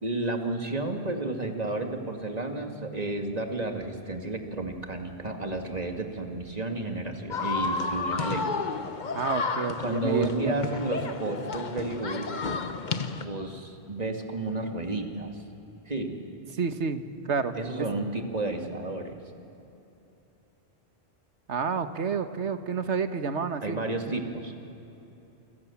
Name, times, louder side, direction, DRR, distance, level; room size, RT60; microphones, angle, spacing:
voice 1, 0.0-8.4 9.8-12.3 13.2-15.4 15.9-16.2 17.5-19.1 23.6-24.5, right 2 dB, 35° right, 4 dB, 2.4 m, -32 dB
sound 1, 7.3-13.3, left 4 dB, 45° left, 1.1 m, -32 dB
voice 2, 9.1-10.7 16.6-17.6 21.5-23.8, right 5 dB, 90° right, 9 dB, 1.5 m, -29 dB
28.5 x 26.0 x 7.2 m, 3.0 s
omnidirectional pair, 1.1 m